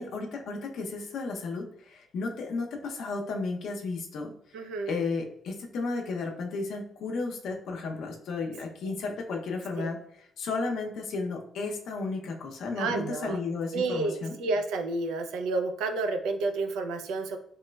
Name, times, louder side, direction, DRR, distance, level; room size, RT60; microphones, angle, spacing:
voice 1, 0.0-4.3 4.9-14.3, left 3 dB, 75° left, 1 dB, 0.6 m, -33 dB
voice 2, 4.5-4.9 9.8-9.9 12.8-13.4 13.7-17.4, right 3 dB, 90° right, 5 dB, 0.4 m, -30 dB
3.1 x 2.9 x 2.2 m, 0.71 s
cardioid pair, 90°, 0 cm